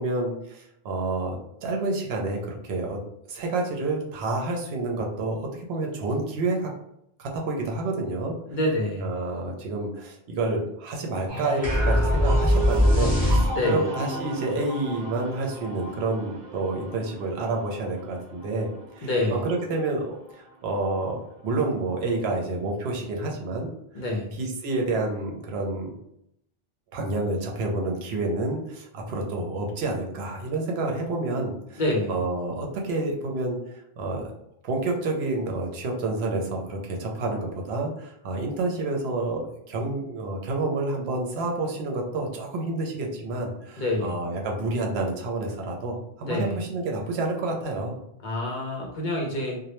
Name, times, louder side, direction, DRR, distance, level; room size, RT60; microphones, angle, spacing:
voice 1, 0.0-3.0 3.3-6.7 7.2-8.4 9.0-23.7 24.4-25.9 26.9-31.8 32.1-34.3 34.6-48.0, right 2 dB, 80° right, 1 dB, 0.8 m, -29 dB
voice 2, 8.5-9.1 13.5-13.8 19.0-19.5 23.9-24.3 31.8-32.2 43.8-44.1 46.2-46.6 48.2-49.6, left 1 dB, 55° left, -1 dB, 0.6 m, -27 dB
sound 1, 11.3-20.8 21.2-21.7, right 1 dB, 45° right, 0.3 m, -37 dB
sound 2, 11.6-13.9, left 1 dB, 10° left, 0.7 m, -21 dB
2.1 x 2.0 x 2.9 m, 0.77 s
omnidirectional pair, 1.1 m